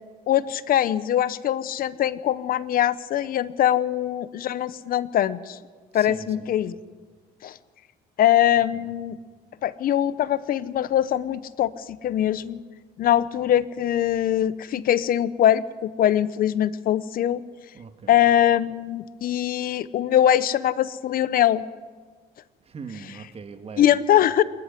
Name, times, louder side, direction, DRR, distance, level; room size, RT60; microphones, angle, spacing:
voice 1, 0.3-5.6 5.9-6.7 7.4-7.6 8.2-9.2 9.6-12.6 13.0-17.4 18.1-21.6 23.8-24.4, left 11 dB, 60° left, 17 dB, 0.8 m, -22 dB
voice 2, 5.9-6.5 8.7-8.9 17.7-18.2 22.7-24.0, right 5 dB, 35° right, 8 dB, 2.0 m, -41 dB
26.5 x 11.5 x 9.9 m, 1.5 s
cardioid pair, 110°, 17 cm